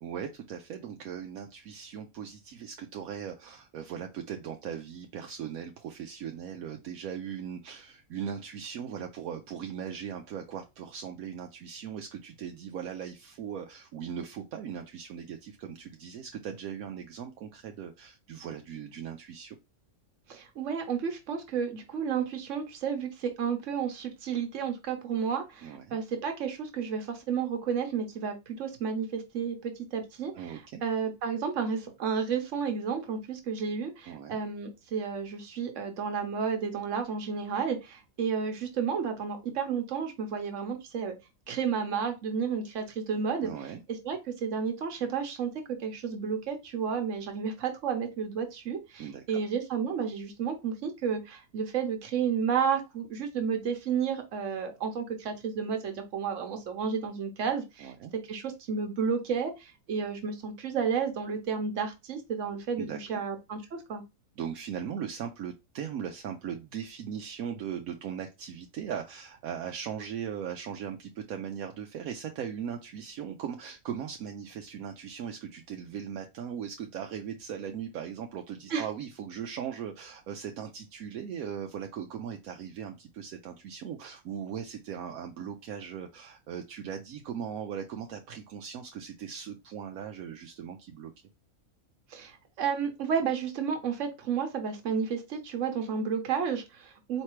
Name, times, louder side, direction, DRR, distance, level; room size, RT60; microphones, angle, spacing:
voice 1, 0.0-19.6 25.6-26.0 30.3-30.8 34.1-34.4 43.4-43.8 49.0-49.2 57.8-58.1 62.8-63.2 64.4-91.1, right 8 dB, 80° right, 4 dB, 1.0 m, -39 dB
voice 2, 20.3-41.1 41.5-43.5 44.0-57.9 58.3-64.0 78.7-78.8 92.1-97.2, right 6 dB, 60° right, 6 dB, 1.3 m, -32 dB
4.4 x 3.3 x 3.0 m, 0.24 s
omnidirectional pair, 1.5 m